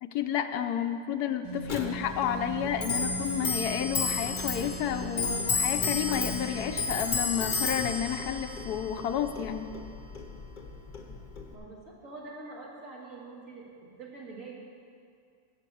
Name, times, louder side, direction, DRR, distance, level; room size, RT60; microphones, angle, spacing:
voice 1, 0.0-9.7, left 9 dB, 85° left, 8 dB, 1.2 m, -31 dB
sound 1, 1.4-6.8, right 2 dB, 20° right, 0.9 m, -40 dB
Clock, 1.7-11.5, left 4 dB, 35° left, 0.9 m, -33 dB
voice 2, 11.5-14.5, right 3 dB, 55° right, -3 dB, 2.3 m, -45 dB
13.5 x 4.8 x 8.4 m, 2.2 s
omnidirectional pair, 1.6 m